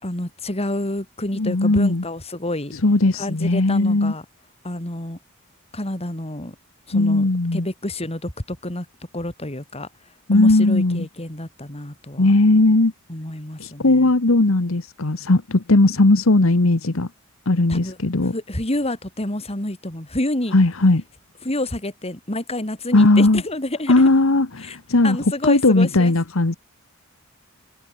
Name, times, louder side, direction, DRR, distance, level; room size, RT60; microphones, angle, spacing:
voice 1, 0.0-2.7 3.2-4.2 4.6-5.2 5.7-6.5 6.9-8.9 9.1-9.9 10.3-12.3 13.1-14.1 17.7-18.0 18.3-20.5 21.4-23.9 24.6-24.8 25.0-26.1, left 1 dB, 30° left, 3.3 m, -28 dB
voice 2, 1.3-2.0 2.7-4.1 6.9-7.7 10.3-11.1 12.2-12.9 13.6-17.1 17.5-18.3 20.5-21.0 22.9-23.4 23.9-26.6, left 2 dB, 65° left, 1.3 m, -17 dB
head